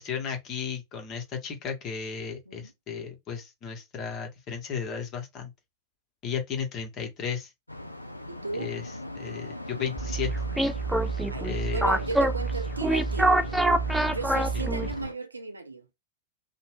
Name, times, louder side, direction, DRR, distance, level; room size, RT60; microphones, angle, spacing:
voice 1, 0.0-5.5 6.2-7.5 8.5-8.8 9.2-10.3 11.4-11.8, left 7 dB, 35° left, 1.0 m, -34 dB
sound 1, 7.7-15.1, left 1 dB, 85° left, 0.3 m, -39 dB
voice 2, 8.3-8.8 11.3-13.4 14.1-15.9, right 3 dB, 80° right, 0.4 m, -35 dB
sound 2, 10.0-15.1, right 2 dB, 5° right, 0.3 m, -26 dB
2.6 x 2.1 x 3.2 m
figure-of-eight pair, 90°, 0 cm